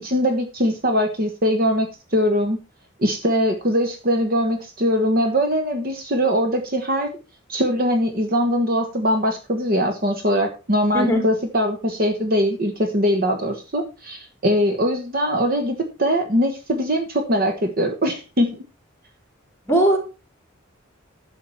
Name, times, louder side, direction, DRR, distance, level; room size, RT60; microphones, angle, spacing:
voice 1, 0.0-2.6 3.0-7.1 7.5-18.6, equal, 45° right, 5 dB, 1.3 m, -21 dB
voice 2, 19.7-20.0, right 1 dB, 15° left, 1 dB, 3.6 m, -17 dB
11.5 x 7.2 x 4.5 m, 0.31 s
head